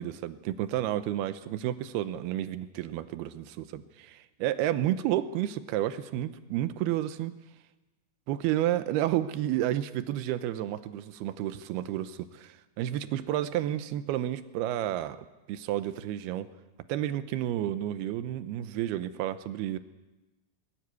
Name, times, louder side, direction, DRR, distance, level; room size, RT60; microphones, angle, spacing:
voice 1, 0.0-7.3 8.3-15.2 15.5-16.5 16.9-19.8, right 12 dB, 75° right, 12 dB, 2.5 m, -31 dB
21.0 x 14.0 x 9.7 m, 1.1 s
omnidirectional pair, 5.2 m